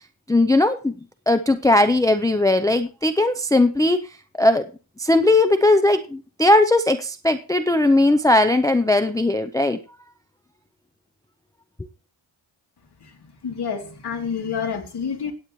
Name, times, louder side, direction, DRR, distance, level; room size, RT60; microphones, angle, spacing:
voice 1, 0.3-1.0 1.3-4.0 4.4-4.7 5.0-9.8, left 2 dB, 5° left, 8 dB, 0.6 m, -18 dB
voice 2, 13.4-15.3, left 6 dB, 55° left, 3 dB, 3.1 m, -28 dB
17.5 x 8.9 x 3.1 m, 0.34 s
wide cardioid pair, 165°, 48 cm